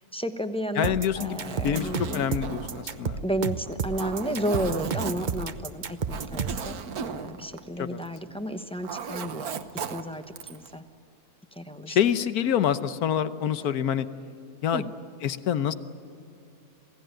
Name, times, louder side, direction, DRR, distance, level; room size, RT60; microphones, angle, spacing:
voice 1, 0.1-2.2 3.2-9.6 9.9-10.2 10.5-10.8 11.6-12.0 13.6-13.7 14.7-14.9, equal, 5° left, 8 dB, 0.9 m, -32 dB
voice 2, 0.7-3.2 7.8-8.0 11.9-14.1 14.6-14.9 15.2-15.7, left 9 dB, 85° left, 13 dB, 1.4 m, -26 dB
sound 1, 0.8-6.7, right 5 dB, 40° right, 0.8 m, -31 dB
Zipper (clothing), 1.2-8.3 8.6-10.7, right 7 dB, 80° right, 1.5 m, -37 dB
27.5 x 17.0 x 9.0 m, 2.7 s
omnidirectional pair, 1.6 m